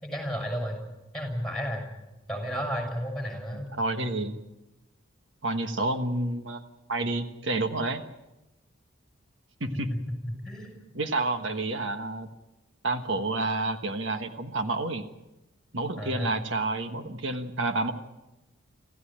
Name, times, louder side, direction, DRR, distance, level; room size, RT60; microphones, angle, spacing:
voice 1, 0.0-0.8 1.1-1.9 2.3-3.7 9.7-10.0 10.3-10.8 16.0-16.4, equal, 5° left, 2 dB, 6.4 m, -32 dB
voice 2, 3.5-4.4 5.4-6.6 6.9-8.0 9.6-9.9 10.9-12.3 12.8-15.0 15.7-17.9, right 2 dB, 65° right, 7 dB, 1.3 m, -29 dB
26.5 x 15.5 x 8.8 m, 1.0 s
head